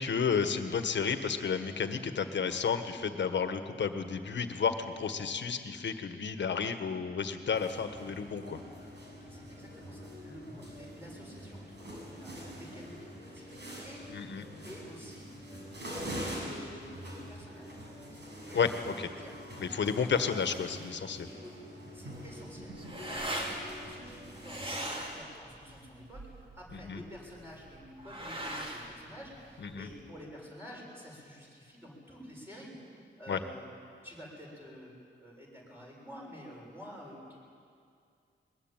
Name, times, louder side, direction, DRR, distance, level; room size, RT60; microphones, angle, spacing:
voice 1, 0.0-8.6 14.1-14.5 18.5-19.1 19.6-21.3 26.7-27.0 29.6-29.9 33.3-33.4, left 6 dB, 70° left, 8 dB, 1.5 m, -32 dB
sound 1, 7.5-24.8, equal, 65° right, 7.4 m, -45 dB
voice 2, 9.3-14.0 14.6-15.3 15.8-17.7 18.1-19.4 19.8-20.2 21.4-21.5 21.9-33.7 34.0-34.9 35.2-37.4, equal, 10° right, -3 dB, 6.9 m, -50 dB
sound 2, 22.1-30.0, right 1 dB, 30° right, 3.0 m, -41 dB
22.0 x 21.0 x 9.1 m, 2.3 s
wide cardioid pair, 140°, 19 cm